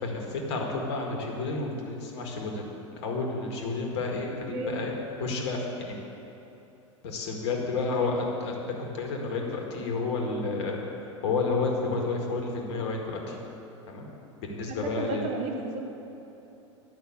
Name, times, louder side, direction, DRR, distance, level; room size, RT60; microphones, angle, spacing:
voice 1, 0.0-2.6 3.0-4.9 5.2-6.0 7.0-10.8 11.2-13.4 13.9-14.0 14.4-15.3, left 3 dB, 60° left, 1 dB, 1.9 m, -30 dB
voice 2, 14.7-15.8, right 2 dB, 45° right, 2 dB, 1.6 m, -33 dB
10.5 x 5.9 x 7.8 m, 3.0 s
figure-of-eight pair, 85°, 16 cm